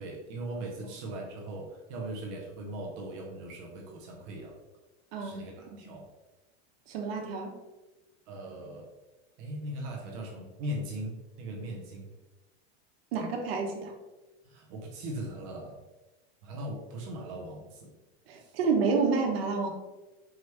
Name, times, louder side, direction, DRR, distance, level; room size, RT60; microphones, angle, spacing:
voice 1, 0.0-4.6 5.2-6.0 8.3-8.9 9.4-12.1 14.4-15.8 16.4-17.9 18.4-18.5, right 1 dB, 30° right, -1 dB, 0.5 m, -39 dB
voice 2, 5.1-5.4 5.8-5.9 6.9-7.6 13.1-13.9 18.3-19.7, right 4 dB, 65° right, 2 dB, 1.0 m, -29 dB
4.6 x 2.9 x 3.2 m, 1.1 s
supercardioid pair, 180°, 33 cm